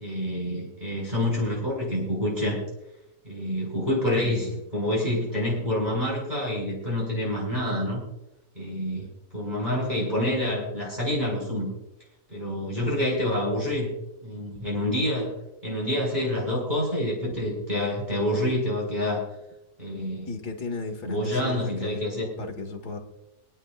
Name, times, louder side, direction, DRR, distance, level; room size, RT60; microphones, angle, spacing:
voice 1, 0.0-2.6 3.2-8.0 8.5-9.1 9.3-11.7 12.3-13.9 14.2-15.3 15.6-19.2 19.8-20.3 21.0-22.3, left 1 dB, 25° right, -5 dB, 4.8 m, -27 dB
voice 2, 4.1-4.6 20.3-22.1 22.4-23.0, left 3 dB, 75° left, 4 dB, 2.2 m, -35 dB
26.5 x 10.5 x 2.4 m, 0.89 s
omnidirectional pair, 1.7 m